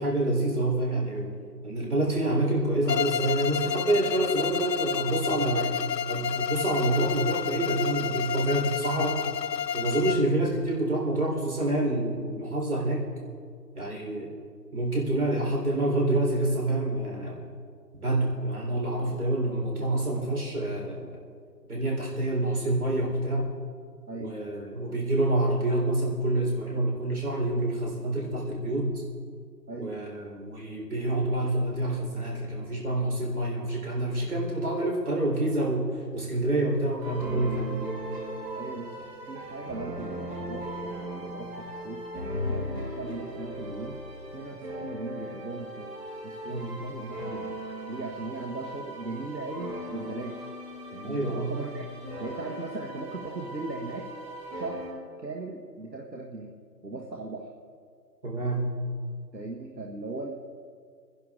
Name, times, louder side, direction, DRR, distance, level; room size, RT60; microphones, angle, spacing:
voice 1, 0.0-1.3 1.6-5.6 6.1-9.2 9.7-13.0 13.7-14.3 14.7-17.5 18.0-21.1 21.7-23.5 24.2-28.9 29.8-37.8 46.5-46.7 51.0-51.5 58.2-58.6, right 1 dB, 60° right, -2 dB, 4.1 m, -27 dB
Bowed string instrument, 2.9-10.3, left 8 dB, 80° left, 0.5 m, -30 dB
voice 2, 24.1-24.4 29.7-30.0 38.5-44.0 44.3-45.9 46.2-47.6 47.9-50.5 50.9-51.9 52.2-54.1 54.5-54.8 55.2-56.5 56.8-57.5 59.3-60.3, right 3 dB, 85° right, 1 dB, 1.6 m, -38 dB
sound 1, 37.0-54.9, equal, 10° right, 2.3 m, -38 dB
24.5 x 10.5 x 3.7 m, 2.1 s
figure-of-eight pair, 145°, 49 cm